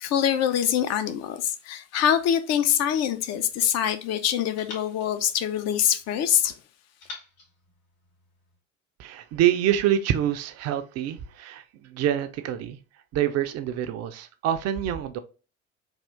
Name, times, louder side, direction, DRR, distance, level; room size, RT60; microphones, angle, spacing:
voice 1, 0.0-6.5, left 10 dB, 45° left, 0.6 m, -24 dB
sound 1, 2.8-4.0 4.6-6.2 7.0-8.6, left 3 dB, 70° left, 1.9 m, -48 dB
voice 2, 9.0-12.8 13.1-15.2, right 11 dB, 40° right, 0.5 m, -26 dB
3.5 x 2.4 x 3.4 m
figure-of-eight pair, 65°, 38 cm